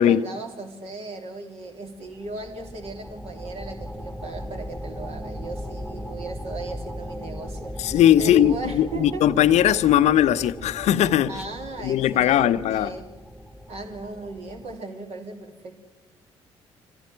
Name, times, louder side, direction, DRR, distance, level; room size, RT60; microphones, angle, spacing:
voice 1, 0.0-9.2 11.3-13.1 13.7-15.8, right 2 dB, 50° right, 3.2 m, -37 dB
sound 1, 1.9-14.8, equal, ahead, 1.9 m, -38 dB
voice 2, 7.8-11.4 11.8-13.0, left 11 dB, 50° left, 0.8 m, -19 dB
25.0 x 15.5 x 9.1 m
figure-of-eight pair, 45°, 14 cm